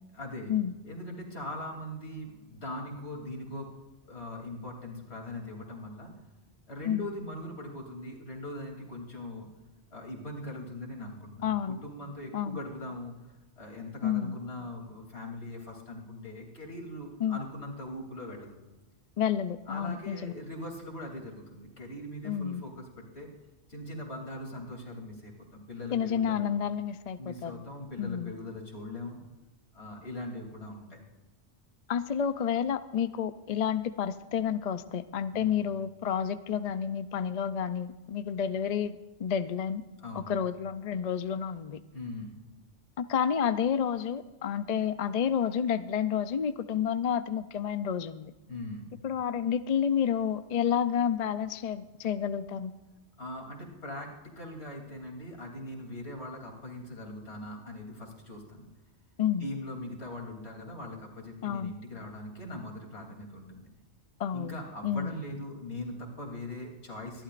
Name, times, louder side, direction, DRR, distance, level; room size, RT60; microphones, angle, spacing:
voice 1, 0.1-0.5 0.8-3.7 4.1-6.1 6.7-9.5 9.9-13.1 13.6-18.6 19.7-23.3 23.7-26.5 27.2-29.2 29.7-31.0 35.3-35.6 40.0-40.3 41.9-42.4 48.5-48.9 53.2-58.7 59.4-63.7 64.3-67.2, left 1 dB, 65° left, 0 dB, 3.3 m, -41 dB
voice 2, 11.4-11.8 12.3-12.6 14.0-14.4 17.2-17.4 19.2-20.3 22.2-22.6 25.9-27.5 28.0-28.3 31.9-39.8 40.1-41.8 43.0-48.3 49.0-52.7 59.2-59.5 61.4-61.8 64.2-64.6 64.8-65.1, left 8 dB, 50° left, 12 dB, 0.5 m, -30 dB
26.0 x 12.0 x 2.5 m, 1.2 s
omnidirectional pair, 1.2 m